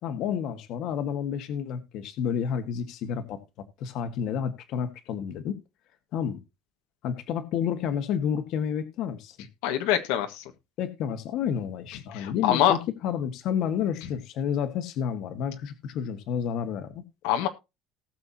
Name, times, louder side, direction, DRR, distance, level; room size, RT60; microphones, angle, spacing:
voice 1, 0.0-3.4 3.8-5.6 6.1-6.4 7.0-9.4 10.8-17.0, left 8 dB, 50° left, 1.6 m, -30 dB
voice 2, 9.6-10.4 12.1-12.8 17.2-17.5, left 11 dB, 85° left, 1.6 m, -24 dB
19.0 x 6.9 x 2.8 m
cardioid pair, 180°, 0 cm